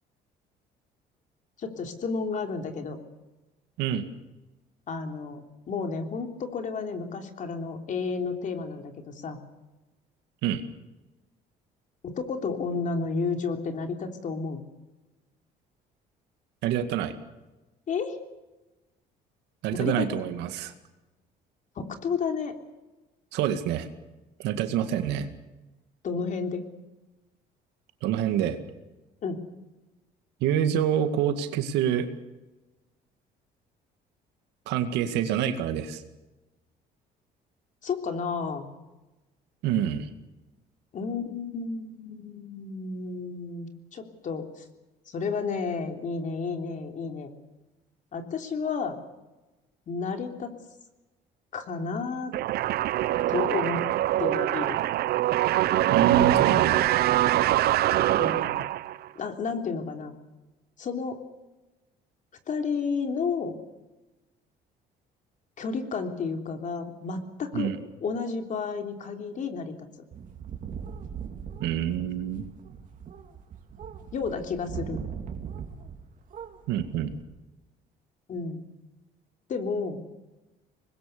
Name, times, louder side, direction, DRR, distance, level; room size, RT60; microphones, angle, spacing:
voice 1, 1.6-3.0 4.9-5.4 5.7-9.4 12.0-14.6 17.9-18.2 19.7-20.2 21.7-22.5 26.0-26.6 29.2-29.4 37.8-38.7 40.9-44.6 45.1-47.3 48.1-49.0 49.9-50.5 51.5-52.3 53.3-53.8 54.2-54.8 58.2-58.6 59.1-60.1 60.8-61.2 62.5-63.5 65.6-67.7 68.0-69.7 74.1-75.0 78.3-78.6 79.5-80.0, left 5 dB, 50° left, 5 dB, 3.4 m, -31 dB
voice 2, 16.6-17.1 19.6-20.7 23.3-23.9 24.4-25.3 28.0-28.6 30.4-32.1 34.7-36.0 39.6-40.1 55.9-56.9 67.5-67.8 71.6-72.4 76.7-77.1, right 10 dB, 90° right, 8 dB, 2.1 m, -26 dB
sound 1, 52.3-59.1, right 14 dB, 70° right, 0.7 m, -24 dB
sound 2, 70.1-76.0 76.3-77.2, right 7 dB, 50° right, 3.4 m, -40 dB
25.0 x 20.5 x 6.9 m, 1.1 s
cardioid pair, 110°, 17 cm